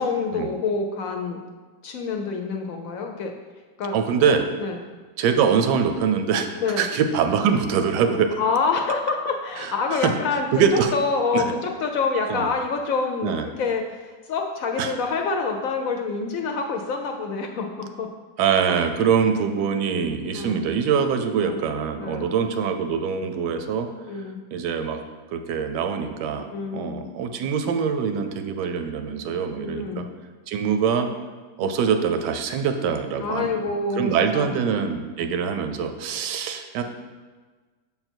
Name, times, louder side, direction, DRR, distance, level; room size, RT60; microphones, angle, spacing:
voice 1, 0.0-1.4 1.8-3.3 3.8-3.9 4.6-4.8 6.6-6.8 8.4-10.5 10.9-18.1 20.3-20.6 21.4-21.6 22.0-22.3 23.2-23.3 24.1-24.4 26.5-27.1 29.5-30.1 31.6-31.7 33.2-34.5, left 4 dB, 70° left, 3 dB, 0.9 m, -27 dB
voice 2, 3.9-4.4 5.2-6.5 6.8-8.4 9.6-9.7 10.0-10.1 10.5-10.9 11.3-11.4 12.3-12.5 13.2-13.5 14.8-14.9 18.4-23.9 24.5-25.0 25.3-30.1 30.5-31.1 31.6-36.8, right 6 dB, 85° right, 7 dB, 1.2 m, -23 dB
6.8 x 4.0 x 4.4 m, 1.4 s
omnidirectional pair, 1.8 m